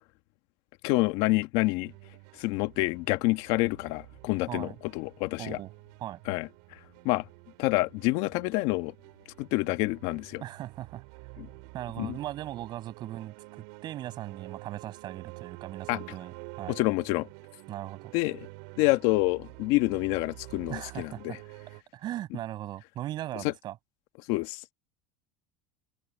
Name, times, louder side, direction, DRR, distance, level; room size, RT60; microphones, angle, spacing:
voice 1, 0.8-1.9 2.4-5.6 6.3-6.5 7.0-7.2 7.6-8.9 9.4-10.4 11.4-11.5 12.0-12.1 15.9-16.0 16.7-17.3 18.1-18.4 18.8-21.4 23.4-23.5 24.3-24.6, left 21 dB, 65° left, 1.6 m, -27 dB
sound 1, 1.8-21.8, right 31 dB, 75° right, 5.3 m, -49 dB
voice 2, 5.4-5.7 6.0-6.2 10.4-11.0 11.7-13.3 13.8-16.8 17.7-18.1 20.7-21.4 21.9-23.8, right 13 dB, 45° right, 6.9 m, -38 dB
supercardioid pair, 120°, 10 cm